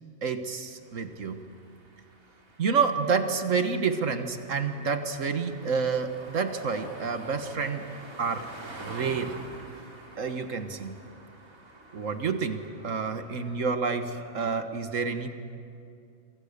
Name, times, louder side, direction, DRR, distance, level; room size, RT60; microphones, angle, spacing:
voice 1, 0.2-1.4 2.6-7.9 8.2-8.5 8.8-9.4 10.2-11.0 11.9-15.3, right 5 dB, 70° right, 7 dB, 1.8 m, -29 dB
sound 1, 0.8-13.8, right 2 dB, 85° right, 3.4 m, -47 dB
27.5 x 24.0 x 6.8 m, 2.5 s
omnidirectional pair, 1.4 m